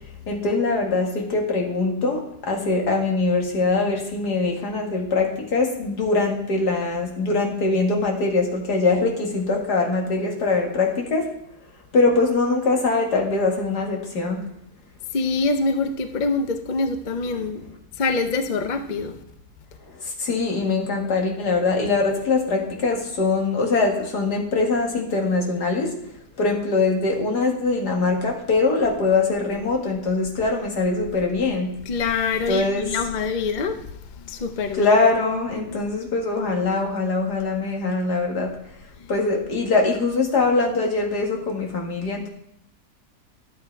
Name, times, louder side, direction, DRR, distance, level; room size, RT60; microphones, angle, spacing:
voice 1, 0.3-11.4 11.9-14.4 19.9-31.7 32.5-33.0 34.7-38.6 39.1-42.3, left 3 dB, 75° left, 1 dB, 2.5 m, -22 dB
voice 2, 15.1-17.6 18.0-19.2 31.9-33.9 34.2-34.9, left 4 dB, 40° left, 7 dB, 0.7 m, -25 dB
11.5 x 8.6 x 4.6 m, 0.74 s
omnidirectional pair, 1.7 m